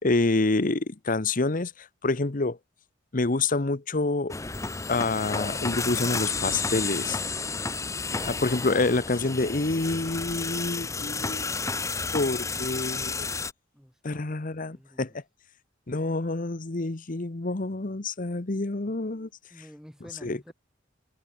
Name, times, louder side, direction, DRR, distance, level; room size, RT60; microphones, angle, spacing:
voice 1, 0.0-2.6 3.1-4.3 4.9-7.2 8.2-11.5 12.1-13.3 14.0-15.2 15.9-19.3 20.2-20.5, left 3 dB, 45° left, 1.0 m, -27 dB
sound 1, 4.3-13.5, left 4 dB, 15° left, 0.7 m, -31 dB
voice 2, 13.7-14.2 14.7-15.2 19.5-20.5, equal, 5° right, 5.3 m, -50 dB
head